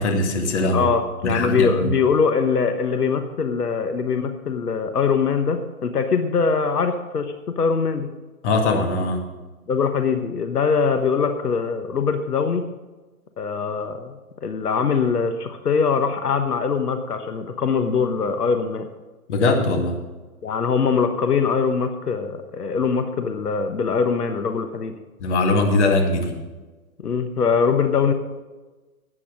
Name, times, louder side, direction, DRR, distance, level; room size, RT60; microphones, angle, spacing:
voice 1, 0.0-0.9 1.2-1.9 8.4-9.2 19.3-20.0 25.2-26.4, left 2 dB, 50° left, 4 dB, 2.2 m, -21 dB
voice 2, 0.7-8.1 9.7-12.6 13.4-14.1 14.4-18.9 20.4-24.9 27.0-28.1, left 5 dB, 90° left, 7 dB, 1.2 m, -22 dB
12.5 x 8.5 x 6.4 m, 1.2 s
hypercardioid pair, 135°, 45 cm